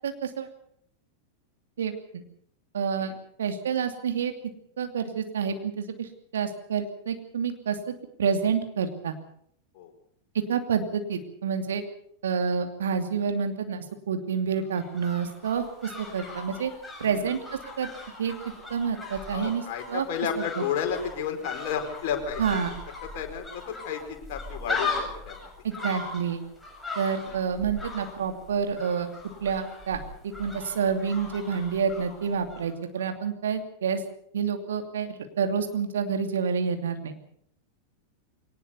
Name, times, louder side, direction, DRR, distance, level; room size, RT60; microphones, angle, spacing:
voice 1, 0.0-0.5 1.8-2.2 2.7-4.3 4.8-7.9 8.2-9.1 10.5-11.8 12.2-16.7 17.0-17.4 17.8-17.9 18.2-18.3 18.7-19.6 19.9-20.1 20.6-20.7 22.4-22.7 25.6-26.4 26.9-29.1 29.4-34.0 34.3-37.2, right 6 dB, 65° right, 7 dB, 2.7 m, -28 dB
sound 1, 14.5-32.7 33.0-33.1, left 3 dB, 5° left, 7.6 m, -39 dB
voice 2, 17.0-17.3 19.3-22.6 23.1-25.5 27.3-27.4, left 7 dB, 50° left, 4 dB, 4.7 m, -32 dB
22.5 x 19.0 x 7.0 m, 0.67 s
figure-of-eight pair, 90°, 0 cm